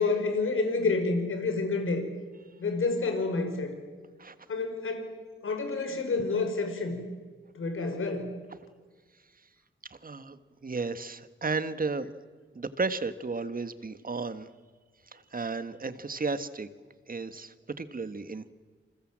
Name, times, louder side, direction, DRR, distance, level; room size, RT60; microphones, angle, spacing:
voice 1, 0.0-2.0 2.6-3.8 4.5-5.2 5.4-7.0 7.5-8.3, left 3 dB, 75° left, 6 dB, 5.5 m, -29 dB
voice 2, 9.9-12.1 12.5-14.5 15.1-16.7 17.1-18.5, right 4 dB, 45° right, 11 dB, 1.6 m, -34 dB
28.0 x 28.0 x 7.6 m, 1.4 s
wide cardioid pair, 90°, 21 cm